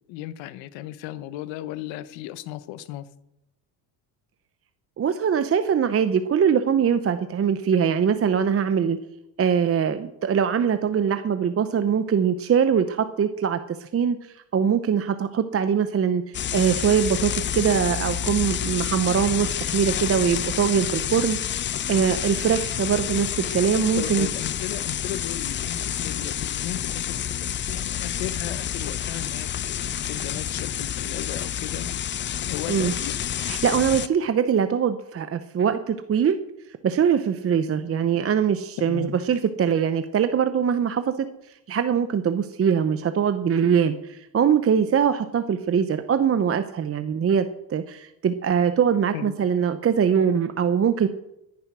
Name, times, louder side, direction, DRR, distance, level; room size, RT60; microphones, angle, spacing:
voice 1, 0.1-3.1 24.0-31.9 32.5-33.3 38.8-39.2 49.1-49.4, left 13 dB, 85° left, 15 dB, 1.0 m, -36 dB
voice 2, 5.0-9.0 9.4-14.2 14.5-21.4 21.9-24.3 32.7-32.9 33.4-36.4 36.8-41.3 41.7-51.1, right 7 dB, 30° right, 10 dB, 0.8 m, -22 dB
sound 1, 16.3-34.1, left 10 dB, 30° left, 0.4 m, -29 dB
14.0 x 10.5 x 6.1 m, 0.85 s
cardioid pair, 105°, 44 cm